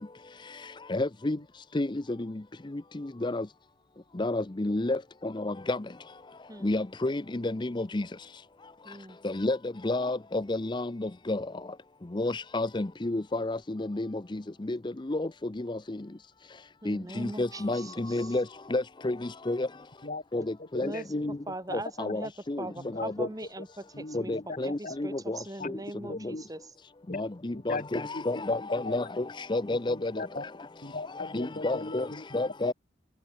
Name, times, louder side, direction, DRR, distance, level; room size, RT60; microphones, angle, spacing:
voice 1, 0.9-1.4 1.7-2.0 2.9-3.4 4.2-5.8 6.6-8.1 9.2-9.6 9.8-11.5 12.1-14.4 14.7-14.8 15.1-15.3 15.6-16.0 16.9-18.4 18.7-19.7 20.3-20.4 20.7-21.4 22.0-22.2 22.5-22.7 23.0-23.3 24.1-25.4 25.6-25.7 27.1-30.1 31.2-32.1 32.3-32.7, left 2 dB, 25° left, 0.6 m, -30 dB
voice 2, 8.8-9.2 16.8-18.4 20.8-21.1 21.5-22.3 22.6-26.6, right 1 dB, 20° right, 2.4 m, -41 dB
voice 3, 20.0-21.4 21.7-21.8 22.2-22.3 22.8-23.1 23.9-24.9 25.6-25.7 26.1-26.4 27.1-27.2 27.5-27.9 28.1-28.4 28.8-28.9 29.9-30.4 30.8-32.2, left 3 dB, 40° left, 1.4 m, -39 dB
head